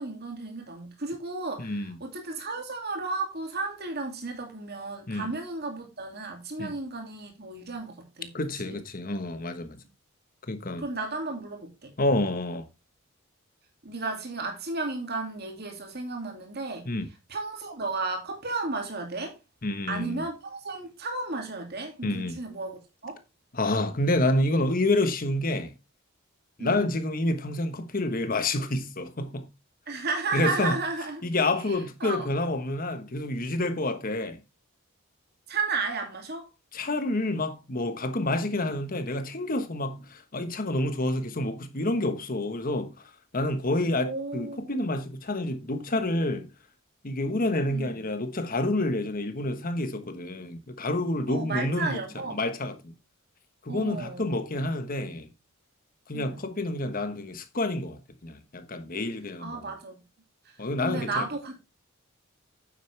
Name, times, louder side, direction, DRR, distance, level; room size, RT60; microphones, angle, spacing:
voice 1, 0.0-8.3 8.6-8.8 10.8-11.9 13.8-16.9 17.3-19.4 19.9-23.2 26.6-26.9 29.9-32.3 35.5-36.5 38.5-38.7 43.9-44.9 47.7-48.0 51.3-52.4 53.7-54.3 56.1-56.4 59.4-60.0 60.5-60.6 60.8-61.6, right 3 dB, 50° right, 2.5 m, -33 dB
voice 2, 1.6-2.0 5.1-5.3 6.6-6.7 8.3-9.8 10.5-10.8 12.0-12.7 16.8-17.1 19.6-20.2 22.0-22.4 23.5-25.7 26.6-29.5 30.3-30.8 31.2-34.4 36.7-43.0 43.3-46.5 47.0-52.0 52.3-52.9 53.6-55.3 56.1-59.7 60.6-61.3, left 2 dB, 40° left, 1.2 m, -28 dB
9.3 x 7.6 x 3.4 m
head